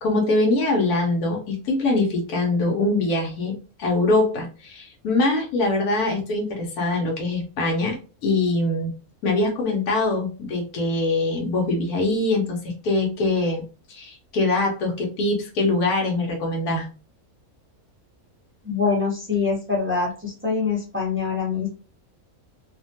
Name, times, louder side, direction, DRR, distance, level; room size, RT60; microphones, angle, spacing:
voice 1, 0.0-3.5 3.8-8.0 8.2-8.9 9.2-13.6 13.9-16.9, left 2 dB, 90° left, 0 dB, 1.3 m, -23 dB
voice 2, 18.6-21.7, left 5 dB, 15° right, -3 dB, 0.5 m, -24 dB
2.8 x 2.2 x 2.7 m, 0.35 s
omnidirectional pair, 1.5 m